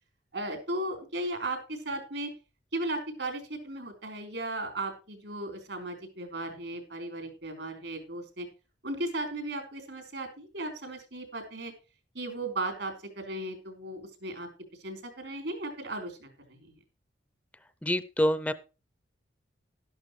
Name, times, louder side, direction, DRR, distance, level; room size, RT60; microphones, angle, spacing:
voice 1, 0.3-2.3 2.7-8.5 8.8-11.7 12.1-14.5 14.8-16.8, right 1 dB, 75° right, 5 dB, 4.1 m, -36 dB
voice 2, 17.8-18.5, equal, 5° left, 13 dB, 0.5 m, -26 dB
12.0 x 11.5 x 3.2 m, 0.32 s
head